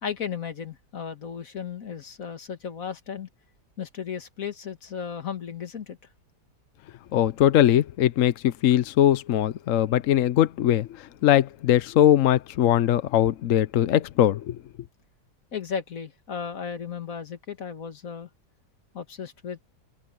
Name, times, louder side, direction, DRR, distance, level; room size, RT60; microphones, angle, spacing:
voice 1, 0.0-3.3 3.8-6.0 15.5-18.3 18.9-19.6, left 7 dB, 50° left, 2.1 m, -35 dB
voice 2, 7.1-10.9 11.2-14.6, left 11 dB, 65° left, 0.8 m, -21 dB
omnidirectional pair, 2.0 m